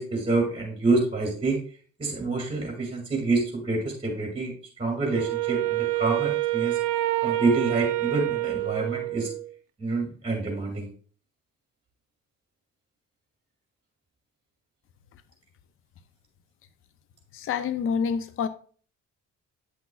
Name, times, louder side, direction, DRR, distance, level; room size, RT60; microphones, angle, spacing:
voice 1, 0.0-1.6 2.0-6.8 7.2-9.3 9.8-10.9, right 3 dB, 20° right, 2.1 m, -27 dB
Wind instrument woodwind instrument, 5.1-9.5, right 17 dB, 90° right, 0.6 m, -27 dB
voice 2, 17.3-18.5, left 6 dB, 45° left, 0.5 m, -27 dB
8.3 x 5.9 x 2.3 m
cardioid pair, 90°, 30 cm